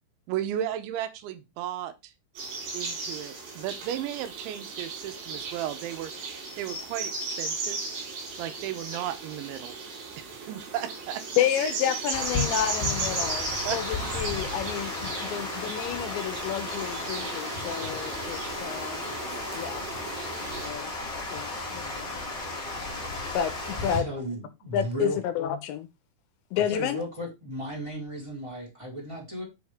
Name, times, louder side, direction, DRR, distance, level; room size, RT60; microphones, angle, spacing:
voice 1, 0.3-2.1 2.7-7.8 8.4-9.7 10.2-11.2 11.5-11.8 13.6-13.8, right 11 dB, 80° right, 3.1 m, -35 dB
sound 1, 2.4-20.7, right 4 dB, 65° right, 6.4 m, -36 dB
voice 2, 11.4-19.0 19.5-19.8 20.6-20.9 21.3-22.4 23.3-24.1 24.7-25.9 26.5-27.0, left 10 dB, 80° left, 2.9 m, -30 dB
Water, 12.1-24.0, left 3 dB, 30° left, 2.5 m, -34 dB
voice 3, 24.0-25.2 26.5-29.4, right 1 dB, 5° right, 4.3 m, -35 dB
9.2 x 6.3 x 3.6 m
omnidirectional pair, 5.4 m